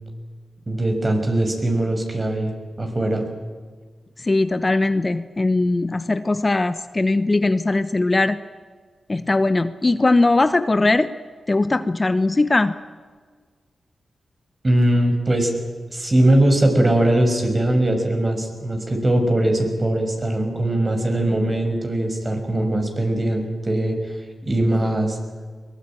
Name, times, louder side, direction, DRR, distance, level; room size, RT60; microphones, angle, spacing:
voice 1, 0.7-3.2 14.6-15.5 15.9-25.2, right 1 dB, 35° right, 4 dB, 6.0 m, -20 dB
voice 2, 4.2-8.4 9.1-11.1 11.5-12.7, left 2 dB, 30° left, 12 dB, 0.9 m, -20 dB
22.5 x 20.5 x 9.0 m, 1.5 s
cardioid pair, 60°, 0 cm